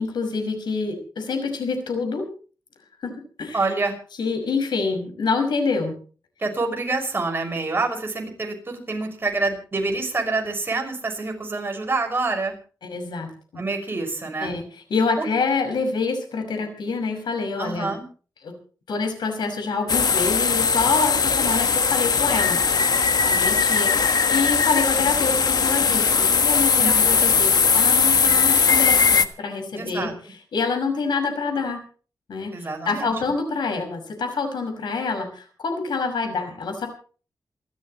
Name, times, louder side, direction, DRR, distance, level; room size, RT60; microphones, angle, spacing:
voice 1, 0.0-2.3 3.0-3.1 3.4-3.7 4.2-6.0 12.8-13.6 14.4-14.6 14.9-17.9 18.4-18.5 18.9-22.6 22.8-30.1 30.5-31.8 32.3-36.9, left 4 dB, 85° left, 6 dB, 5.9 m, -26 dB
voice 2, 3.5-3.9 6.4-12.5 13.6-14.5 17.6-18.0 26.8-27.1 29.8-30.1 32.5-33.1, right 3 dB, 30° right, 3 dB, 6.0 m, -27 dB
sound 1, 19.9-29.3, left 5 dB, 60° left, 1.5 m, -19 dB
28.0 x 14.0 x 3.1 m, 0.39 s
wide cardioid pair, 110°, 7 cm